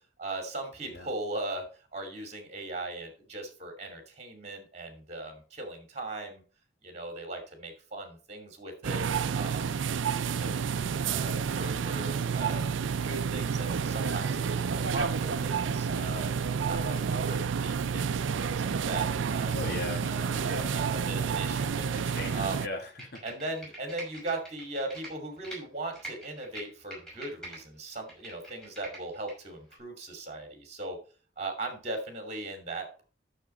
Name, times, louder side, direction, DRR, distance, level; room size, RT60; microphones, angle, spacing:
voice 1, 0.2-1.6 1.9-6.4 6.8-9.1 9.3-9.8 10.4-12.7 13.0-16.3 16.7-19.5 19.9-20.3 20.7-22.0 22.3-22.6 23.2-31.0 31.4-33.0, right 2 dB, 35° right, 4 dB, 2.5 m, -38 dB
sound 1, 8.8-22.7, right 6 dB, 90° right, 0.5 m, -30 dB
sound 2, 14.0-21.7, right 3 dB, 75° right, 0.8 m, -40 dB
voice 2, 19.5-20.7 21.9-23.2, left 3 dB, 60° left, 1 dB, 2.1 m, -39 dB
Computer keyboard, 22.8-25.6 25.9-27.6 27.9-29.3 29.7-29.8, right 1 dB, 5° left, 5.9 m, -44 dB
11.5 x 6.7 x 4.4 m, 0.37 s
head